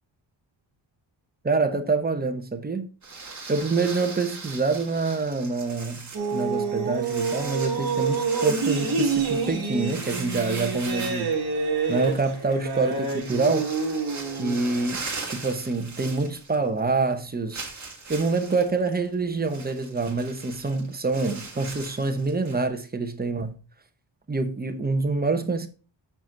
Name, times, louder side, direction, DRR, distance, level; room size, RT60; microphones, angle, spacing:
voice 1, 1.4-2.9 3.5-11.4 11.9-13.7 14.3-17.6 18.1-23.6 24.3-25.7, right 3 dB, 20° right, 0.9 m, -26 dB
sound 1, 3.0-16.8 17.1-17.2 17.5-22.7, right 4 dB, 35° right, 2.3 m, -39 dB
sound 2, 6.1-15.0, right 4 dB, 50° right, 2.1 m, -27 dB
8.1 x 6.1 x 3.9 m
wide cardioid pair, 160°, 47 cm